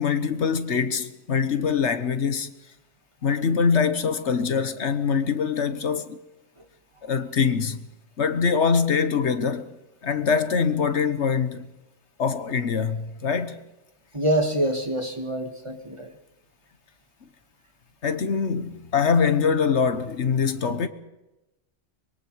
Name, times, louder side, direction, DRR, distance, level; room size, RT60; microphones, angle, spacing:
voice 1, 0.0-2.5 3.2-6.2 7.0-7.8 8.2-9.7 10.0-11.7 12.2-13.6 18.0-20.9, left 6 dB, 75° left, 1.4 m, -23 dB
voice 2, 14.1-16.1, right 1 dB, 25° right, 1.8 m, -25 dB
25.0 x 22.5 x 4.8 m
omnidirectional pair, 1.2 m